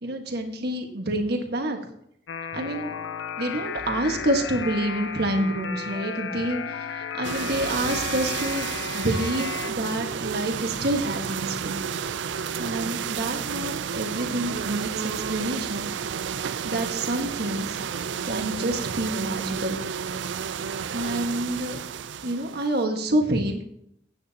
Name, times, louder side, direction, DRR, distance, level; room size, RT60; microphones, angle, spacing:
voice 1, 0.0-1.8 2.5-2.9 3.4-11.8 12.6-15.9 16.6-17.8 18.2-19.8 20.9-21.8 22.2-23.6, right 1 dB, 55° right, 4 dB, 1.5 m, -28 dB
sound 1, 2.3-9.7, left 6 dB, 75° left, 0.6 m, -34 dB
sound 2, 7.2-22.8, right 7 dB, 70° right, 0.4 m, -31 dB
16.0 x 9.0 x 2.9 m, 0.73 s
head